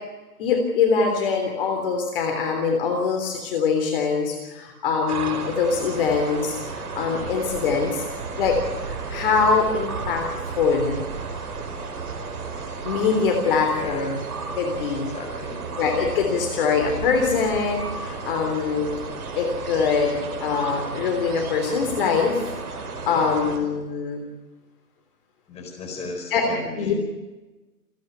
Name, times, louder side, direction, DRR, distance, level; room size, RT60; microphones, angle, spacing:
voice 1, 0.4-8.0 8.4-8.6 8.8-10.3 10.6-11.0 12.8-14.2 14.6-15.1 15.8-18.9 19.4-22.4 23.1-24.2 26.3-26.4 26.8-26.9, left 5 dB, 35° left, 3 dB, 3.4 m, -23 dB
sound 1, 5.1-23.6, right 4 dB, 70° right, 5.0 m, -33 dB
voice 2, 7.1-7.5 13.7-14.1 15.1-15.9 23.0-23.4 25.5-26.9, left 3 dB, 15° left, 2 dB, 4.5 m, -36 dB
28.5 x 10.0 x 9.6 m, 1.2 s
hypercardioid pair, 155°, 45 cm